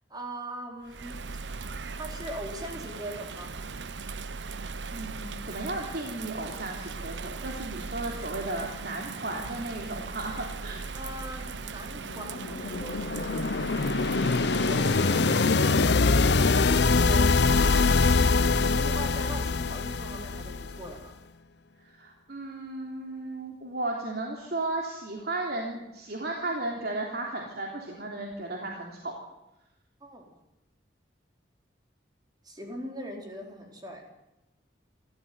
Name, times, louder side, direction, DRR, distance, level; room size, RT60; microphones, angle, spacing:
voice 1, 0.1-1.2 1.9-3.5 10.9-13.4 14.5-18.0 18.3-21.2 30.0-30.3 32.4-34.1, right 1 dB, 25° right, 2 dB, 4.7 m, -41 dB
Bird vocalization bird call bird song / Rain, 0.8-15.5, right 4 dB, 85° right, 1.0 m, -38 dB
voice 2, 4.9-10.9 22.0-29.1, right 2 dB, 60° right, 0 dB, 3.3 m, -34 dB
sound 1, 12.1-20.9, left 4 dB, 70° left, 0.8 m, -24 dB
27.5 x 14.0 x 9.5 m, 0.94 s
head